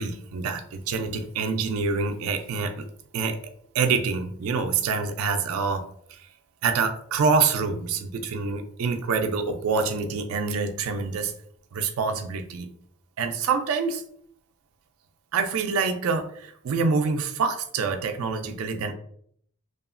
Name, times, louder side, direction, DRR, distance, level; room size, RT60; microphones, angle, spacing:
voice 1, 0.0-2.9 3.1-3.4 3.7-5.8 6.1-6.3 6.6-11.3 11.7-12.7 13.2-14.0 15.3-18.9, right 5 dB, 70° right, 6 dB, 0.3 m, -26 dB
2.8 x 2.4 x 2.4 m, 0.63 s
head